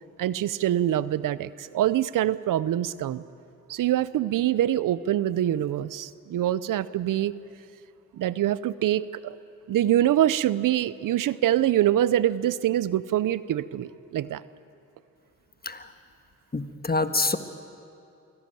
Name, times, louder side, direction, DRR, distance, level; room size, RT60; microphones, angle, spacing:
voice 1, 0.2-3.2 3.7-7.3 8.2-9.4 9.7-14.4, right 12 dB, 85° right, 17 dB, 0.6 m, -24 dB
voice 2, 16.5-17.4, left 3 dB, 30° left, 9 dB, 1.6 m, -26 dB
24.0 x 17.0 x 9.1 m, 2.6 s
cardioid pair, 50°, 31 cm